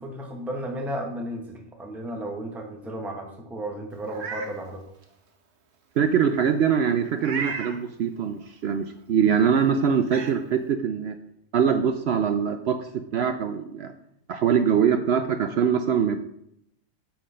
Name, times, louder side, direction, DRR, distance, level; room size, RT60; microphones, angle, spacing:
voice 1, 0.0-4.9, right 1 dB, ahead, 2 dB, 0.9 m, -34 dB
Meow, 4.0-4.5 5.0-5.1 7.2-7.8 9.4-9.5 10.0-10.3, right 5 dB, 50° right, 1.2 m, -33 dB
voice 2, 6.0-11.1 11.5-13.9 14.3-16.2, right 7 dB, 80° right, 8 dB, 0.5 m, -23 dB
8.7 x 5.9 x 5.5 m, 0.76 s
omnidirectional pair, 1.7 m